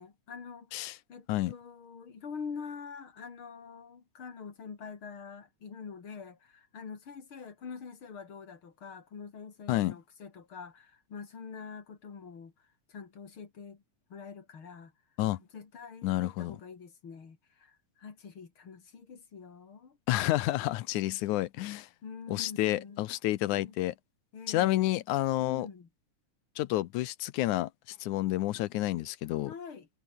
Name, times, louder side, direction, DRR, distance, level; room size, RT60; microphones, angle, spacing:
voice 1, 0.0-12.5 12.9-13.8 14.1-14.9 15.4-20.0 22.0-23.0 23.5-23.8 24.3-25.0 25.4-25.9 29.5-29.9, left 6 dB, 40° left, 3.5 m, -45 dB
voice 2, 16.0-16.6 20.1-21.9 22.3-23.9 24.5-25.7 26.6-29.5, left 16 dB, 75° left, 2.2 m, -30 dB
omnidirectional pair, 3.6 m